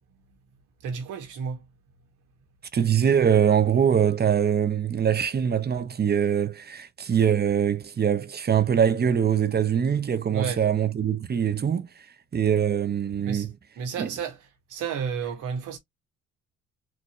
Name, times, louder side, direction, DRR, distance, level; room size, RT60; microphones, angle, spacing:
voice 1, 0.8-1.6 10.3-10.6 13.2-13.5 13.8-14.4 14.7-15.8, right 6 dB, 90° right, 1.8 m, -31 dB
voice 2, 2.7-11.9 12.3-13.5 14.0-14.1, right 8 dB, 35° right, 0.8 m, -23 dB
4.5 x 2.7 x 3.1 m
cardioid pair, 90°, 30 cm